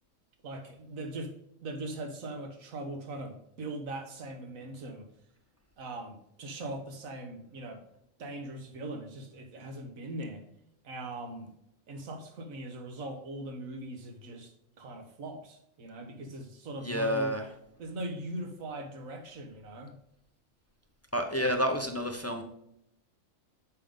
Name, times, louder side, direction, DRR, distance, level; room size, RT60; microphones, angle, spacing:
voice 1, 0.4-1.3 1.6-5.1 5.8-7.8 8.2-10.4 10.8-11.5 11.9-14.5 14.8-17.4 17.8-20.0, right 2 dB, 75° right, 5 dB, 1.5 m, -40 dB
voice 2, 16.8-17.4 21.1-22.4, equal, 20° left, 4 dB, 0.4 m, -29 dB
7.4 x 5.2 x 3.6 m, 0.78 s
omnidirectional pair, 1.4 m